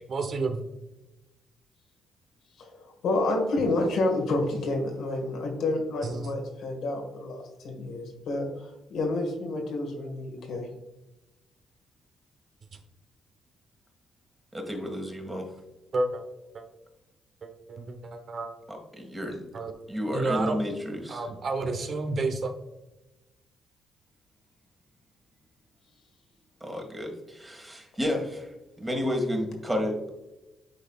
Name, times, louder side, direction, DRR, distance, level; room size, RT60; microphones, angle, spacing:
voice 1, 0.1-0.6 6.0-6.3 15.9-16.2 16.5-16.7 17.4-18.5 19.5-19.7 20.1-20.5 21.1-22.5, right 3 dB, 50° right, 5 dB, 0.9 m, -30 dB
voice 2, 2.6-10.7, left 2 dB, 75° left, 3 dB, 1.6 m, -29 dB
voice 3, 14.5-15.5 18.7-19.4 19.9-21.2 26.6-28.5 28.8-30.1, left 1 dB, 15° right, 3 dB, 1.7 m, -31 dB
10.0 x 4.1 x 2.3 m, 1.0 s
cardioid pair, 90°, 0 cm